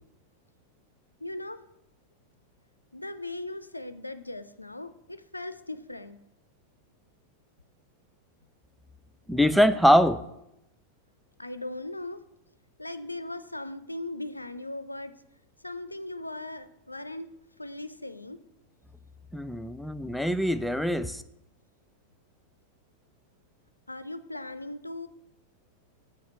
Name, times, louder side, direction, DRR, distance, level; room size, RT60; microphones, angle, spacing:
voice 1, 1.2-1.6 2.9-6.2 11.4-12.2 12.8-15.1 15.6-17.3 17.6-18.4 23.9-25.1, left 2 dB, 85° left, 12 dB, 0.4 m, -38 dB
voice 2, 9.3-10.2 19.3-21.2, equal, ahead, 11 dB, 0.3 m, -23 dB
7.1 x 4.6 x 4.4 m, 0.84 s
figure-of-eight pair, 90°, 0 cm